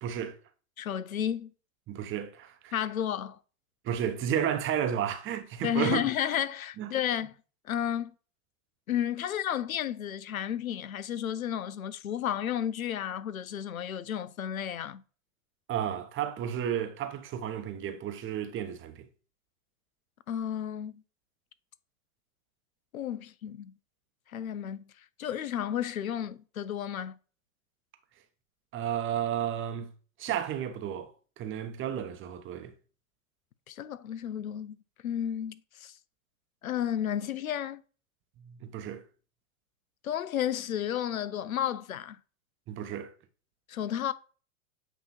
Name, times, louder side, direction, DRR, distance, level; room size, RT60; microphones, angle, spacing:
voice 1, 0.0-0.4 1.9-2.7 3.8-6.0 6.8-6.9 15.7-19.1 28.7-29.9 30.2-31.1 31.4-32.7 38.4-39.0 42.7-43.1, right 9 dB, 30° right, 0.9 m, -32 dB
voice 2, 0.8-1.5 2.7-3.4 5.6-7.3 7.7-8.1 8.9-15.0 20.3-21.0 22.9-23.7 24.3-24.8 25.2-27.2 33.7-34.8 35.0-35.9 36.6-37.8 40.0-42.2 43.7-44.1, left 10 dB, 90° left, 0.6 m, -32 dB
8.2 x 2.9 x 4.2 m
hypercardioid pair, 100°, 41 cm